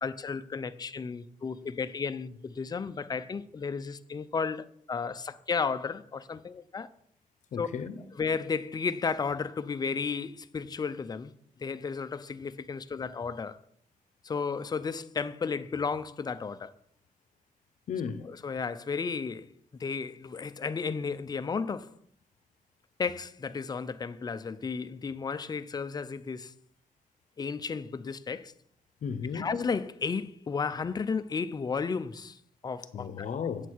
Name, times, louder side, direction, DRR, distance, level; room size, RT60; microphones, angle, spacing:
voice 1, 0.0-6.9 7.6-7.7 8.1-11.3 11.6-13.6 14.2-16.7 18.2-19.5 19.8-22.0 23.0-26.5 27.4-28.5 29.3-33.3, left 5 dB, 30° left, 0.5 m, -33 dB
voice 2, 7.5-8.0 17.9-18.3 29.0-29.5 32.9-33.7, left 6 dB, 60° left, 0.8 m, -34 dB
8.2 x 8.0 x 4.6 m
cardioid pair, 120°, 15 cm